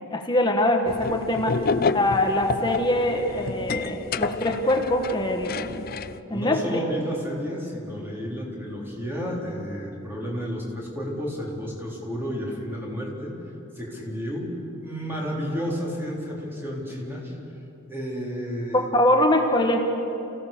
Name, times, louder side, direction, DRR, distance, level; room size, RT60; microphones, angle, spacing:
voice 1, 0.0-1.5 1.9-5.8 6.3-6.6 18.7-19.8, left 1 dB, 25° left, 3 dB, 1.6 m, -23 dB
sound 1, 0.9-6.2, left 4 dB, 50° left, 0.5 m, -29 dB
voice 2, 6.3-13.3 13.8-17.4 17.9-18.9, equal, 10° right, -3 dB, 4.0 m, -31 dB
28.5 x 16.5 x 6.9 m, 2.9 s
head